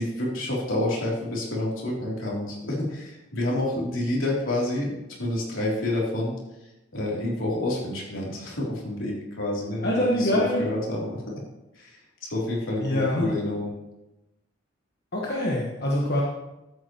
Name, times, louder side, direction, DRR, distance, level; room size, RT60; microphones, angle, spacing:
voice 1, 0.0-11.2 11.7-13.7, left 1 dB, 75° left, -4 dB, 3.2 m, -29 dB
voice 2, 9.8-10.6 12.8-13.3 15.1-16.2, left 1 dB, 50° left, -3 dB, 1.3 m, -24 dB
13.0 x 8.5 x 3.0 m, 0.96 s
head